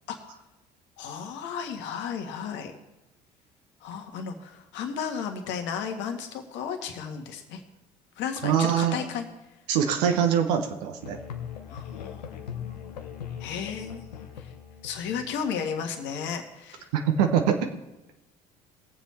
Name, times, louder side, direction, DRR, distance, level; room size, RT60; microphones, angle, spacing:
voice 1, 0.1-0.4 1.0-2.8 3.8-7.6 8.1-9.3 11.7-12.9 13.4-14.5 14.8-16.9, left 7 dB, 65° left, 5 dB, 1.7 m, -34 dB
voice 2, 8.4-9.0 9.7-11.2 16.9-17.7, right 8 dB, 75° right, 5 dB, 1.1 m, -23 dB
Musical instrument, 11.0-15.8, left 8 dB, 90° left, 0.9 m, -40 dB
20.0 x 7.4 x 4.3 m, 1.0 s
hypercardioid pair, 60°, 20 cm